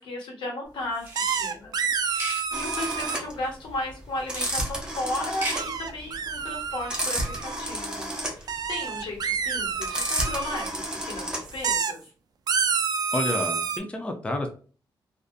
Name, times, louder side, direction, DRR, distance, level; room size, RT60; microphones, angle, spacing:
voice 1, 0.0-1.9 2.5-12.1, left 1 dB, 90° left, 0 dB, 1.0 m, -35 dB
sound 1, 1.0-1.4 2.0-2.4 4.2-4.6 5.2-5.6, right 1 dB, 25° right, 1.1 m, -34 dB
sound 2, 1.1-3.2 5.5-7.6 8.5-10.7 11.4-11.9 12.5-13.8, right 6 dB, 55° right, 0.3 m, -29 dB
sound 3, 2.5-11.7, right 1 dB, 10° right, 0.7 m, -31 dB
voice 2, 13.1-14.5, left 1 dB, 15° left, 4 dB, 0.4 m, -29 dB
2.5 x 2.4 x 2.4 m, 0.39 s
cardioid pair, 105°, 8 cm